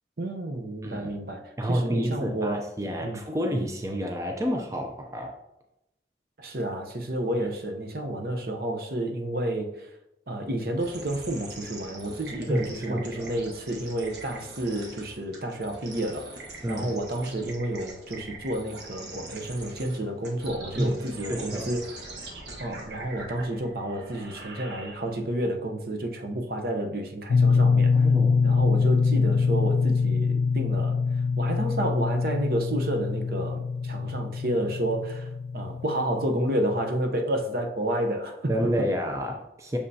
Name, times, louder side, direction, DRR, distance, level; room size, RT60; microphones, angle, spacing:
voice 1, 0.2-1.4 1.7-2.6 3.0-3.2 6.4-9.9 10.3-21.8 22.6-28.0 28.4-31.0 31.4-38.7, right 1 dB, 55° right, 3 dB, 0.8 m, -30 dB
voice 2, 1.6-5.4 7.4-7.5 12.5-13.4 16.6-16.9 20.8-21.0 21.3-21.7 27.9-28.4 38.5-39.8, equal, 20° right, 1 dB, 0.5 m, -29 dB
sound 1, 10.8-25.3, right 2 dB, 80° right, 1.2 m, -43 dB
sound 2, 27.3-36.9, left 5 dB, 70° left, 0.4 m, -24 dB
6.5 x 5.4 x 2.7 m, 0.87 s
head